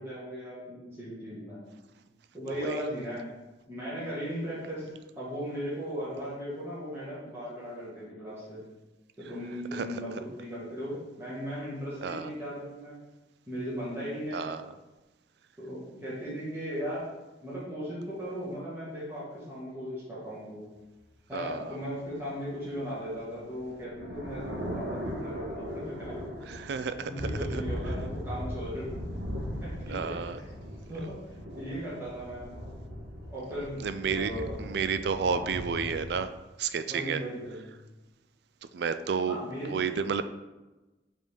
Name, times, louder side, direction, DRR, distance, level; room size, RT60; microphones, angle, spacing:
voice 1, 0.0-1.6 2.3-3.3 3.7-4.9 5.1-8.7 9.2-12.9 13.5-14.4 15.6-17.1 17.4-20.6 21.3-26.1 26.4-26.5 27.0-28.9 29.6-30.4 30.9-32.4 33.3-34.6 35.2-35.5 36.9-37.7 39.3-39.7, equal, 15° right, -10 dB, 1.7 m, -37 dB
voice 2, 12.0-12.3 14.3-14.7 21.3-21.8 26.5-27.6 29.9-30.4 30.6-30.7 33.8-36.3 36.6-37.2 38.7-39.4 39.7-40.2, right 6 dB, 60° right, 11 dB, 0.3 m, -31 dB
sound 1, 23.1-36.2, equal, 85° right, 1.3 m, -38 dB
5.2 x 3.5 x 5.1 m, 1.1 s
head